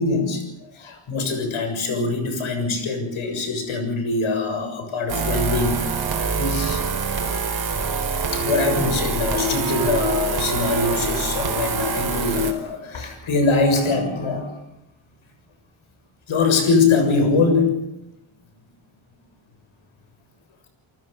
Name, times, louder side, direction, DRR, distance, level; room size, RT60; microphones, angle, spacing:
voice 1, 0.0-6.8 7.8-7.9 8.3-14.6 16.3-17.8, left 4 dB, 80° left, 6 dB, 7.1 m, -23 dB
sound 1, 5.1-12.5, right 5 dB, 50° right, 4.7 m, -25 dB
29.5 x 19.5 x 7.0 m, 0.88 s
wide cardioid pair, 125°, 48 cm